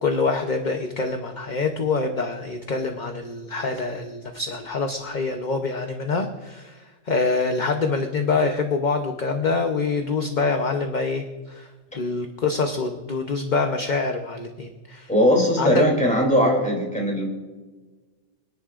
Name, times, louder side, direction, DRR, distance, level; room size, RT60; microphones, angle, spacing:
voice 1, 0.0-11.7 11.9-15.1 15.6-15.9, left 4 dB, 40° left, 4 dB, 0.9 m, -25 dB
voice 2, 15.1-17.3, equal, 5° left, -1 dB, 3.0 m, -19 dB
26.0 x 10.5 x 2.5 m, 1.3 s
omnidirectional pair, 1.3 m